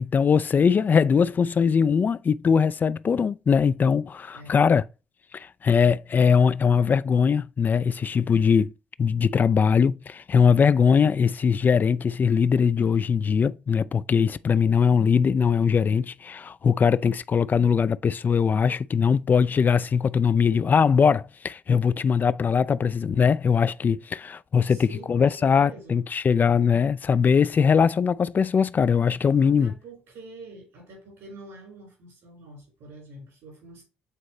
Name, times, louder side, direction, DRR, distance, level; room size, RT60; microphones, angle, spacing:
voice 1, 0.0-4.8 5.3-8.7 9.0-29.7, left 6 dB, 40° left, 0.3 m, -21 dB
voice 2, 24.7-26.0 29.4-33.8, right 2 dB, 70° right, 4.2 m, -46 dB
8.2 x 4.1 x 3.0 m
hypercardioid pair, 45°, 5 cm